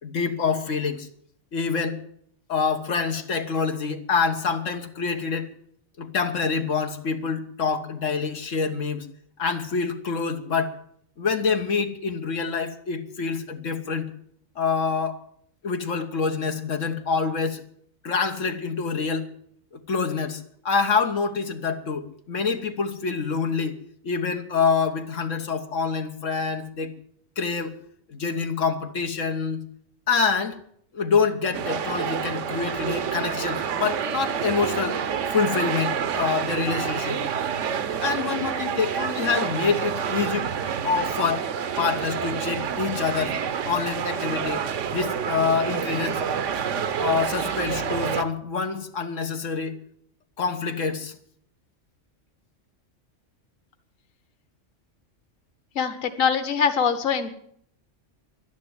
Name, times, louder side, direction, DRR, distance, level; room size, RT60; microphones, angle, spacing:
voice 1, 0.0-1.1 1.5-2.0 2.5-5.5 6.0-9.1 9.4-10.8 11.2-14.1 14.5-15.2 15.6-17.6 18.0-19.3 19.7-23.7 24.0-26.9 27.4-27.7 28.1-29.6 30.1-30.6 30.9-35.0 35.3-37.2 38.0-40.5 40.8-41.5 41.8-43.4 43.6-44.6 44.9-46.2 47.0-49.7 50.4-51.1, left 5 dB, 85° left, 5 dB, 1.6 m, -26 dB
sound 1, 31.5-48.2, right 7 dB, 75° right, 1.2 m, -28 dB
voice 2, 55.7-57.3, left 6 dB, 50° left, 9 dB, 1.3 m, -23 dB
12.0 x 10.5 x 9.5 m, 0.66 s
omnidirectional pair, 1.3 m